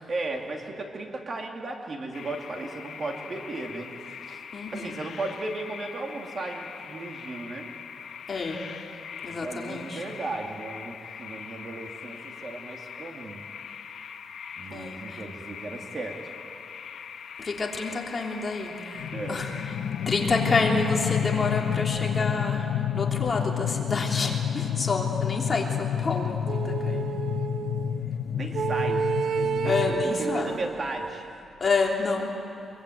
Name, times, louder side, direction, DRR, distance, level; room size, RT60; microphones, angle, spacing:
voice 1, 0.1-3.9 4.2-4.4 4.7-7.7 9.3-13.4 14.5-16.3 19.1-19.5 28.3-29.0 29.3-31.3, right 2 dB, 35° right, 2 dB, 2.5 m, -35 dB
sound 1, 2.1-21.8, left 7 dB, 65° left, 1.5 m, -42 dB
voice 2, 4.5-5.0 8.3-8.6 9.2-10.0 14.7-15.2 17.4-19.5 20.1-27.1 29.6-30.6 31.6-32.3, left 3 dB, 30° left, -1 dB, 3.2 m, -29 dB
sound 2, 19.0-30.0, left 9 dB, 90° left, 0.9 m, -29 dB
sound 3, 26.5-28.0 28.5-31.3, right 6 dB, 55° right, 0.5 m, -30 dB
25.0 x 23.0 x 9.2 m, 2.7 s
wide cardioid pair, 150°, 0 cm